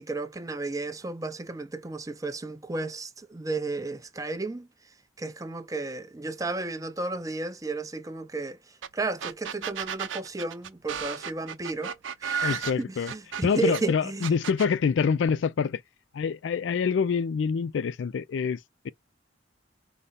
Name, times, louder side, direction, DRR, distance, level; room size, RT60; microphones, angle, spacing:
voice 1, 0.0-4.7 5.2-8.6 8.9-14.3, right 3 dB, 20° right, 0.6 m, -33 dB
sound 1, 8.8-8.9 9.2-13.8 14.2-14.7, right 7 dB, 85° right, 0.6 m, -33 dB
voice 2, 12.4-13.1 13.4-15.8 16.1-18.6 18.8-18.9, left 6 dB, 70° left, 0.4 m, -26 dB
5.0 x 2.2 x 4.1 m
head